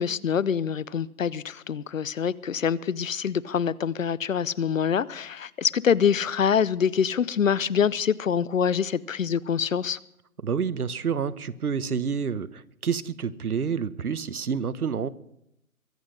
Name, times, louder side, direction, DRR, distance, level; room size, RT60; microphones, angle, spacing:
voice 1, 0.0-10.0, left 7 dB, 60° left, 0.7 m, -25 dB
voice 2, 10.4-15.1, right 6 dB, 80° right, 1.1 m, -28 dB
22.5 x 7.7 x 6.4 m
hypercardioid pair, 165°, 44 cm